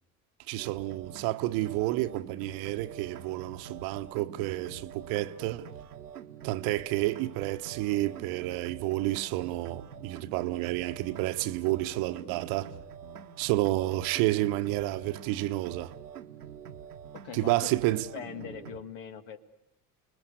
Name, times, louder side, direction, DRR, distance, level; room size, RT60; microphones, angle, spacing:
voice 1, 0.5-5.7 6.4-12.7 13.4-15.9 17.3-18.1, right 17 dB, 50° right, 1.1 m, -30 dB
sound 1, 0.6-18.8, right 8 dB, 75° right, 1.1 m, -46 dB
voice 2, 17.2-17.7 18.1-19.4, left 7 dB, 60° left, 1.9 m, -41 dB
30.0 x 20.5 x 8.1 m
figure-of-eight pair, 65°, 45 cm